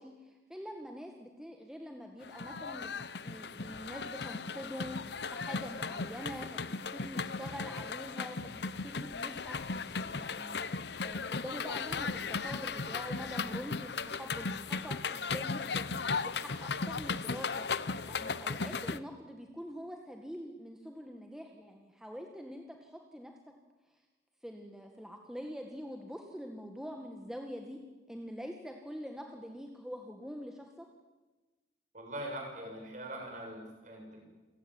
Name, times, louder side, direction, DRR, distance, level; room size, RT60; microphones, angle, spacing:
voice 1, 0.0-2.9 3.2-9.6 10.1-10.6 11.0-17.7 18.0-23.3 24.4-27.8 28.1-30.9, equal, 5° right, 2 dB, 1.8 m, -45 dB
sound 1, 2.2-19.0, left 4 dB, 70° left, 0.9 m, -36 dB
voice 2, 31.9-34.2, right 1 dB, 45° right, 1 dB, 7.6 m, -42 dB
28.5 x 16.5 x 9.7 m, 1.2 s
head